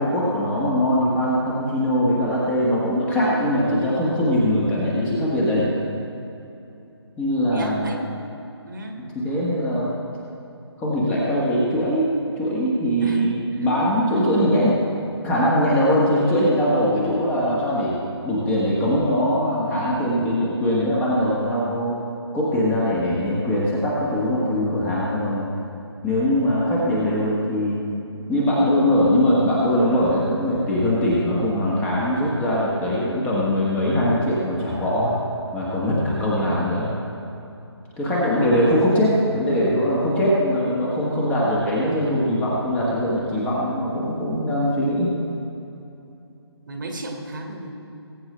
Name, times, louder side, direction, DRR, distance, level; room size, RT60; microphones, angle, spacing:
voice 1, 0.0-5.7 7.2-7.9 9.2-9.9 10.8-14.8 15.2-18.0 18.2-22.0 22.3-25.5 26.0-27.8 28.3-35.1 35.5-36.9 38.0-45.1, equal, 10° left, -6 dB, 1.5 m, -21 dB
voice 2, 7.5-8.0 8.6-9.0 13.0-14.3 36.4-36.6 38.2-38.7 46.7-47.7, right 1 dB, 45° right, 2 dB, 1.7 m, -34 dB
20.5 x 8.7 x 3.3 m, 2.8 s
figure-of-eight pair, 155°, 14 cm